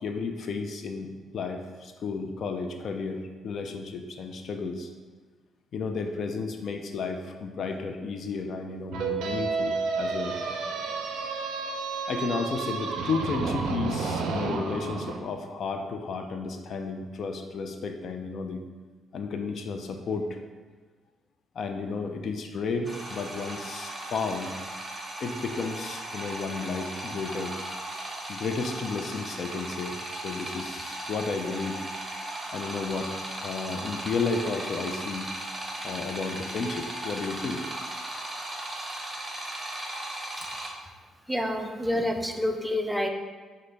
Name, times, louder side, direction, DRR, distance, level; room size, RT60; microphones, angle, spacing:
voice 1, 0.0-4.9 5.7-10.3 12.1-18.6 19.1-20.4 21.6-24.5 25.2-27.6 28.3-31.8 32.5-35.3 35.8-37.8, left 4 dB, 60° left, 5 dB, 0.4 m, -32 dB
sound 1, 8.9-15.2, right 4 dB, 90° right, 0.4 m, -31 dB
sound 2, 22.8-40.7, right 1 dB, 20° right, 0.8 m, -37 dB
voice 2, 41.3-43.1, left 1 dB, 5° right, 4 dB, 0.4 m, -28 dB
6.1 x 2.1 x 3.3 m, 1.4 s
cardioid pair, 90°, 0 cm